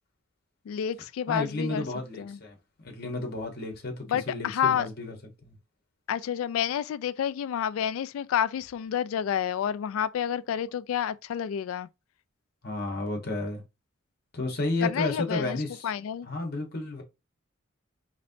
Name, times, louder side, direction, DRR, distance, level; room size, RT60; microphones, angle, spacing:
voice 1, 0.7-1.8 2.2-2.4 4.1-4.9 6.1-11.9 14.8-16.3, left 9 dB, 90° left, 0.3 m, -29 dB
voice 2, 1.3-5.1 5.4-5.6 12.6-13.6 14.3-15.9 16.3-17.0, left 2 dB, 50° left, 1.2 m, -32 dB
4.2 x 3.0 x 2.7 m
head